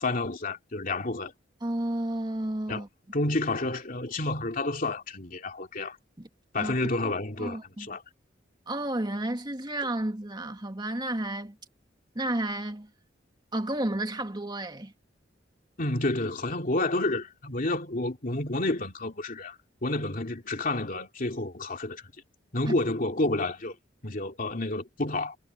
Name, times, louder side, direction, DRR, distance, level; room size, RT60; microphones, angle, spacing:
voice 1, 0.0-1.3 2.7-2.8 3.1-6.0 6.5-7.6 7.9-8.0 15.8-22.0 22.5-23.8 24.0-25.4, left 2 dB, 50° left, 2.8 m, -30 dB
voice 2, 1.6-2.9 6.2-6.3 6.6-7.1 7.4-7.9 8.7-11.6 12.2-12.9 13.5-14.9 22.7-22.8, right 1 dB, 25° right, 2.0 m, -32 dB
head